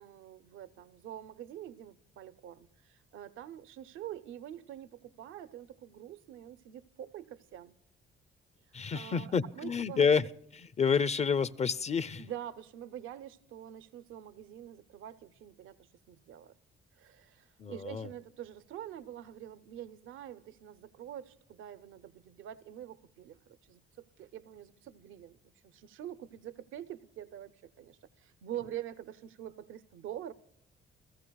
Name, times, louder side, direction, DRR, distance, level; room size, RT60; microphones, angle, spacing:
voice 1, 0.0-7.8 8.7-10.3 12.2-16.6 16.9-30.3, right 11 dB, 85° right, 0.6 m, -46 dB
voice 2, 8.7-10.2 10.5-12.3 17.6-18.1, left 6 dB, 35° left, 0.5 m, -29 dB
29.0 x 14.5 x 2.3 m
cardioid pair, 90°, 20 cm